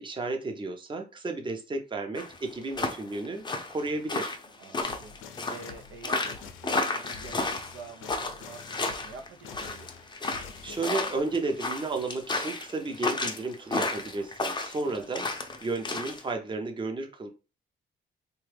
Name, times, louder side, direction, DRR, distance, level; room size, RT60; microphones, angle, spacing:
voice 1, 0.0-4.4 10.6-15.3 15.6-17.3, right 3 dB, 25° right, 4 dB, 0.7 m, -33 dB
sound 1, 2.2-16.2, left 3 dB, 20° left, 0.5 m, -32 dB
voice 2, 4.6-5.2 5.5-9.9 14.8-15.1, right 4 dB, 80° right, 5 dB, 0.6 m, -47 dB
sound 2, 4.8-11.2, left 7 dB, 85° left, 0.5 m, -46 dB
3.0 x 2.3 x 3.3 m, 0.30 s
cardioid pair, 90°, 20 cm